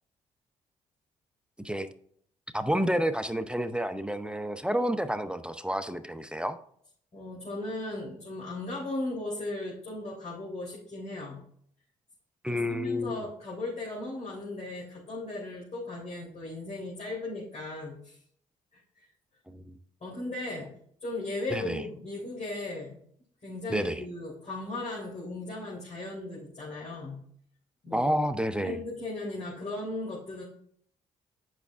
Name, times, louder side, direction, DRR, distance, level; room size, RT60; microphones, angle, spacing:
voice 1, 2.5-6.6 12.4-13.2 19.5-19.7 21.5-21.9 23.7-24.0 27.9-28.8, equal, 5° right, 10 dB, 0.7 m, -30 dB
voice 2, 7.1-11.4 12.5-18.2 18.7-19.1 20.0-20.7 21.0-23.0 23.4-27.2 27.8-28.2 28.6-30.4, left 2 dB, 45° left, -5 dB, 3.4 m, -37 dB
8.2 x 6.0 x 3.5 m, 0.63 s
hypercardioid pair, 50°, 16 cm